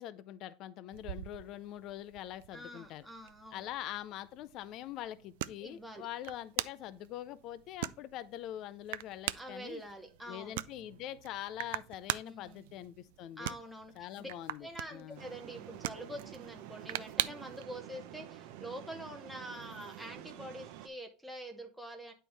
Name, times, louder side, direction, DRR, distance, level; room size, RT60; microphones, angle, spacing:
voice 1, 0.0-3.1 3.5-9.8 10.3-13.6 14.0-15.2, left 12 dB, 50° left, 0.4 m, -44 dB
sound 1, 0.9-17.6, right 16 dB, 85° right, 0.3 m, -43 dB
voice 2, 2.5-3.7 5.6-6.1 9.3-10.6 12.2-12.6 13.4-14.3 14.6-22.1, equal, ahead, 0.8 m, -46 dB
Street Noises Philip Glass Violin Concerto II, 15.2-20.9, right 12 dB, 65° right, 0.7 m, -49 dB
9.0 x 4.4 x 3.3 m
supercardioid pair, 140°, 0 cm